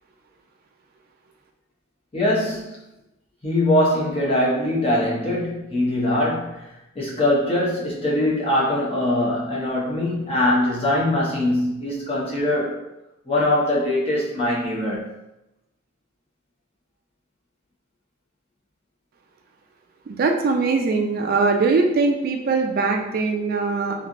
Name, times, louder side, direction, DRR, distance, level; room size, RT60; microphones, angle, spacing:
voice 1, 2.1-2.8 3.4-12.8 13.3-15.1, left 1 dB, 30° left, -6 dB, 0.8 m, -22 dB
voice 2, 20.1-24.1, right 4 dB, 45° right, 3 dB, 0.3 m, -21 dB
3.1 x 2.5 x 2.5 m, 0.94 s
head